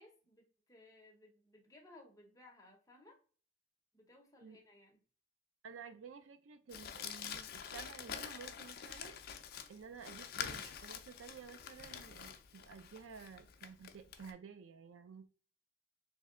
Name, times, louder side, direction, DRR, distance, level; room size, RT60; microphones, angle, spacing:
voice 1, 0.0-3.2 3.9-5.0, left 2 dB, 15° left, 2 dB, 0.7 m, -61 dB
voice 2, 5.6-9.1 9.7-15.3, right 6 dB, 80° right, 10 dB, 0.4 m, -53 dB
Crumpling crinkling, 6.7-14.3, left 8 dB, 50° left, 0.4 m, -46 dB
3.2 x 2.7 x 3.6 m, 0.41 s
head